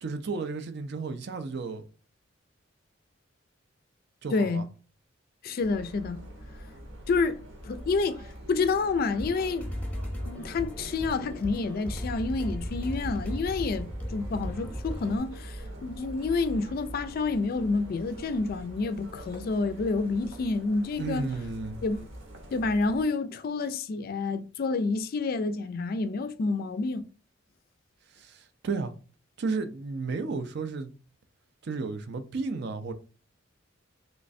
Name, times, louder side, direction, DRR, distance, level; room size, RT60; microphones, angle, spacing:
voice 1, 0.0-1.8 4.2-4.7 21.0-21.8 28.2-28.9 29.4-30.9 31.6-32.9, right 4 dB, 60° right, 0.4 m, -33 dB
voice 2, 4.3-4.7 5.4-6.2 7.1-7.4 7.6-8.2 8.5-9.7 10.3-21.3 21.8-22.1 22.5-27.1, left 3 dB, 50° left, 0.3 m, -29 dB
sound 1, 5.6-23.0, right 1 dB, 75° right, 0.9 m, -43 dB
sound 2, 9.1-15.2, equal, 5° left, 0.7 m, -36 dB
3.1 x 3.1 x 2.6 m
head